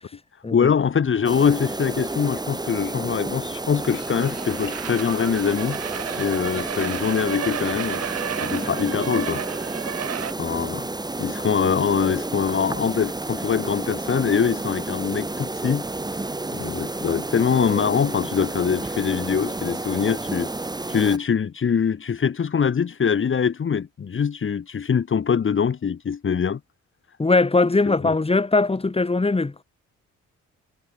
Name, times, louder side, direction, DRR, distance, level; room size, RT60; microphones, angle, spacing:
voice 1, 0.5-5.8 6.2-8.0 8.4-9.4 10.4-10.9 11.2-15.8 16.5-20.5 20.9-26.6 27.9-28.1, left 7 dB, 40° left, 2.4 m, -23 dB
sound 1, 1.2-21.2, right 2 dB, 15° right, 2.2 m, -31 dB
sound 2, 3.8-10.3, right 9 dB, 55° right, 2.3 m, -32 dB
voice 2, 27.2-29.6, left 3 dB, 20° left, 3.7 m, -20 dB
cardioid pair, 90°, 30 cm